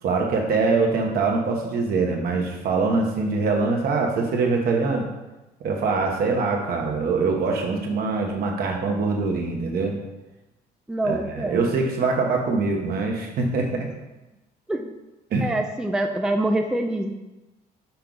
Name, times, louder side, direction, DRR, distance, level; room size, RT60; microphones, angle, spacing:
voice 1, 0.0-5.1 5.6-10.0 11.0-13.9 15.3-15.5, right 4 dB, 65° right, 1 dB, 1.2 m, -23 dB
voice 2, 10.9-11.7 14.7-14.9 15.4-17.1, right 1 dB, 5° right, 4 dB, 0.4 m, -25 dB
5.7 x 4.5 x 3.9 m, 1.0 s
cardioid pair, 110°, 17 cm